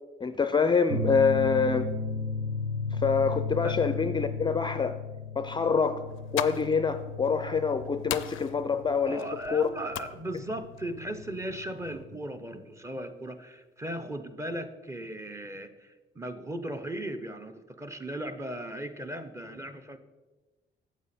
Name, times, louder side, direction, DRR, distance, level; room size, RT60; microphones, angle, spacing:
voice 1, 0.2-1.9 2.9-5.0 5.4-6.0 6.3-9.2 9.5-9.7, left 5 dB, 25° left, 9 dB, 0.4 m, -26 dB
sound 1, 0.9-12.1, left 3 dB, 80° right, 1.0 m, -35 dB
sound 2, 6.0-12.0, left 14 dB, 90° left, 0.4 m, -40 dB
voice 2, 9.1-20.0, right 1 dB, 15° right, 9 dB, 0.7 m, -37 dB
9.1 x 7.2 x 4.2 m, 1.2 s
cardioid pair, 90°, 20 cm